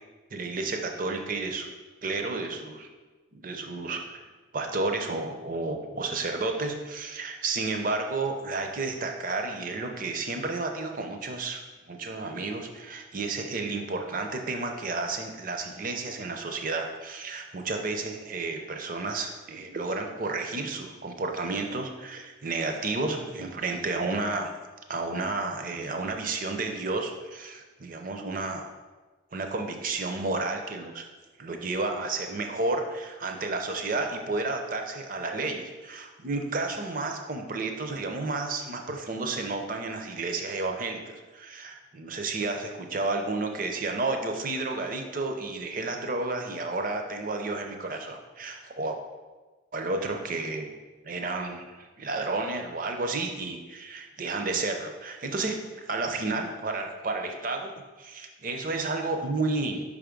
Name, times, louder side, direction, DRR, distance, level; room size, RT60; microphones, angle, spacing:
voice 1, 0.3-1.7 2.0-2.9 3.3-4.2 4.5-11.6 11.9-24.5 24.9-28.6 29.3-31.1 31.4-49.0 49.7-50.7 51.0-59.8, right 3 dB, 40° right, 4 dB, 0.6 m, -31 dB
5.3 x 3.5 x 5.1 m, 1.3 s
head